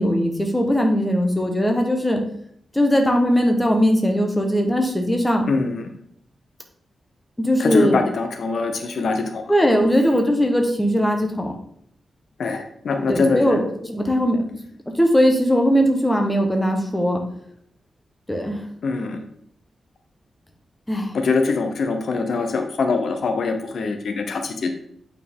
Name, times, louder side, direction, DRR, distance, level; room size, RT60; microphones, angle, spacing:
voice 1, 0.0-2.2 2.7-5.4 7.4-8.0 9.5-11.6 13.1-14.4 15.0-17.2 18.3-18.6 20.9-21.1, equal, 10° left, 2 dB, 1.0 m, -19 dB
voice 2, 5.5-5.9 7.6-9.5 12.4-13.6 18.8-19.2 21.1-24.7, left 4 dB, 60° left, 6 dB, 0.8 m, -23 dB
8.3 x 4.4 x 3.6 m, 0.67 s
wide cardioid pair, 160°, 0 cm